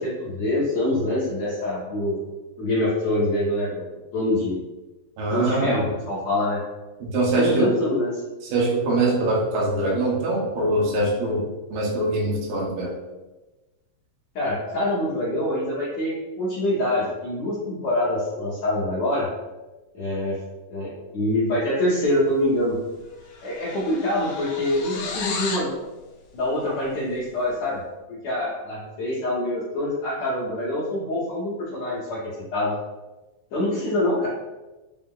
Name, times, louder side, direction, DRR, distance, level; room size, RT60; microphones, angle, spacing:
voice 1, 0.0-2.2 2.6-3.9 4.1-4.6 5.3-6.6 7.4-8.2 14.3-19.3 19.9-20.4 20.7-22.8 23.4-25.7 26.3-27.8 28.1-32.2 32.5-32.7 33.5-34.3, left 1 dB, 70° left, -8 dB, 1.7 m, -25 dB
voice 2, 5.2-5.8 7.0-7.7 8.5-12.9, right 2 dB, 80° right, -3 dB, 2.6 m, -23 dB
sound 1, 22.6-22.8 23.0-25.7, left 4 dB, 90° left, 2.5 m, -33 dB
6.0 x 2.0 x 3.7 m, 1.1 s
omnidirectional pair, 4.3 m